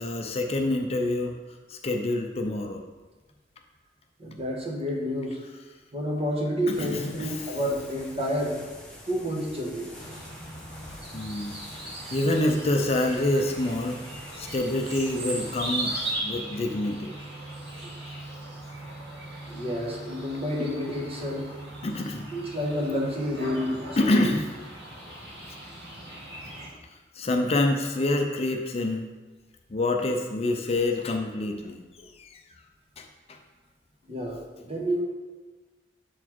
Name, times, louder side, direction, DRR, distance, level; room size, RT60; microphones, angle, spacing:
voice 1, 0.0-1.4 1.7-2.8 6.7-7.4 11.1-14.0 14.3-17.1 20.6-20.7 21.8-22.3 24.0-24.5 25.5-25.6 27.1-29.1 29.7-32.4 33.0-33.4, left 2 dB, 35° left, 3 dB, 0.5 m, -27 dB
voice 2, 4.2-5.4 5.9-8.6 9.1-9.9 17.7-17.9 19.5-21.5 22.3-24.3 34.1-35.0, equal, 35° right, -2 dB, 1.3 m, -30 dB
sound 1, 6.7-16.1, left 1 dB, 5° left, 1.3 m, -46 dB
sound 2, 10.0-26.7, right 2 dB, 65° right, 1.6 m, -38 dB
6.9 x 4.2 x 4.5 m, 1.3 s
head